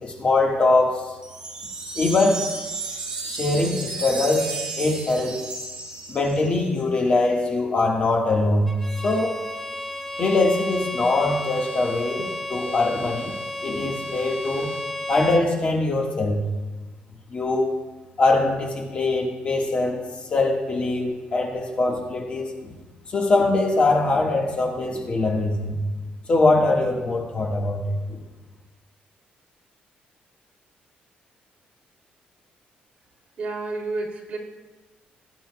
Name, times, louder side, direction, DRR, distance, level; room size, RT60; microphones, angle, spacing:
voice 1, 0.0-1.1 1.9-2.5 3.2-5.4 6.1-8.7 9.0-9.4 10.2-13.3 13.6-14.7 15.1-16.4 17.3-17.8 18.2-22.7 23.1-25.8 26.3-28.2, left 2 dB, 35° left, 0 dB, 1.6 m, -22 dB
sound 1, 1.2-6.6, right 3 dB, 30° right, 1.8 m, -33 dB
Bowed string instrument, 8.7-15.5, left 1 dB, 5° left, 0.8 m, -32 dB
voice 2, 33.4-34.4, right 3 dB, 45° right, -3 dB, 2.8 m, -30 dB
19.0 x 10.0 x 2.3 m, 1.2 s
cardioid pair, 135°, 3 cm